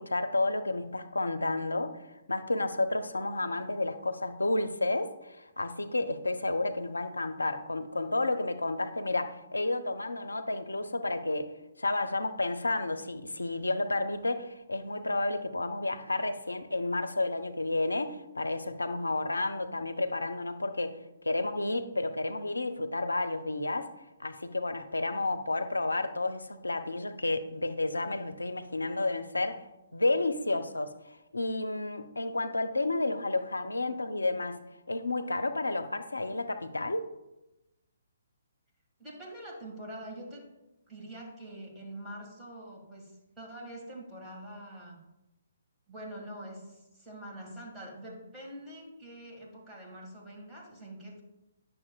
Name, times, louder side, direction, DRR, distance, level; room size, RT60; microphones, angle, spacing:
voice 1, 0.0-1.9 2.3-11.5 11.8-21.0 21.2-23.9 24.2-29.6 29.9-30.9 31.3-34.6 34.9-37.1, left 2 dB, 75° left, 10 dB, 0.5 m, -31 dB
voice 2, 39.0-40.4 40.9-45.0 45.9-51.2, right 1 dB, 10° right, -4 dB, 1.9 m, -45 dB
9.8 x 6.5 x 2.3 m, 0.97 s
figure-of-eight pair, 130°, 0 cm